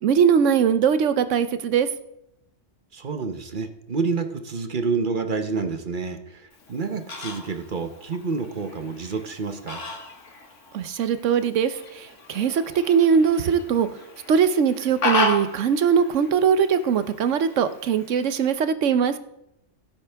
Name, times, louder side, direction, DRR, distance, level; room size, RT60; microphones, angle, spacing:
voice 1, 0.0-1.9 10.7-13.9 14.3-19.1, right 7 dB, 70° right, 12 dB, 1.1 m, -21 dB
voice 2, 2.9-9.8, right 4 dB, 45° right, 8 dB, 0.9 m, -28 dB
Fowl, 6.5-18.5, left 2 dB, 70° left, 2.0 m, -34 dB
16.5 x 8.7 x 3.5 m, 0.81 s
omnidirectional pair, 1.3 m